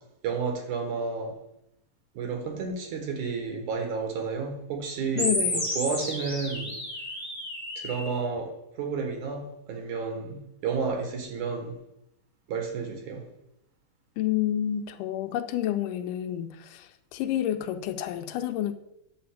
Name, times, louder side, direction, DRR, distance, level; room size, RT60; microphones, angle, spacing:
voice 1, 0.2-1.3 2.2-6.7 7.8-8.5 8.8-11.7 12.5-13.2, right 5 dB, 70° right, 3 dB, 3.0 m, -31 dB
voice 2, 5.1-5.7 14.2-18.7, left 11 dB, 90° left, 8 dB, 2.3 m, -29 dB
sound 1, 5.2-8.2, left 1 dB, 5° left, 2.1 m, -31 dB
9.6 x 4.2 x 7.3 m, 0.82 s
omnidirectional pair, 3.7 m